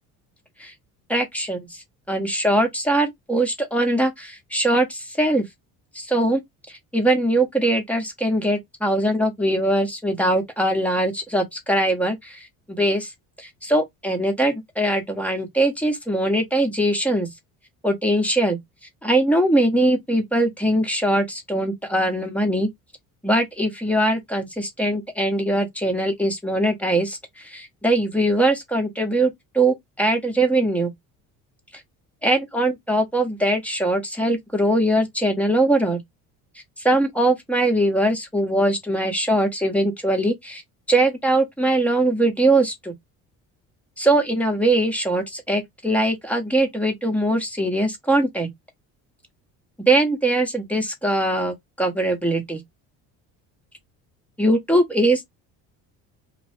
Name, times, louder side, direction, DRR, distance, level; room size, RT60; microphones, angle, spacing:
voice 1, 1.1-5.4 5.9-6.4 6.7-12.5 12.8-13.1 13.4-17.3 17.8-18.6 19.0-22.7 23.2-30.9 32.2-36.0 36.8-40.6 40.9-42.9 44.0-48.5 49.9-52.6 54.4-55.2, right 1 dB, 5° left, 0.9 m, -21 dB
2.5 x 2.0 x 3.2 m
supercardioid pair, 85°, 37 cm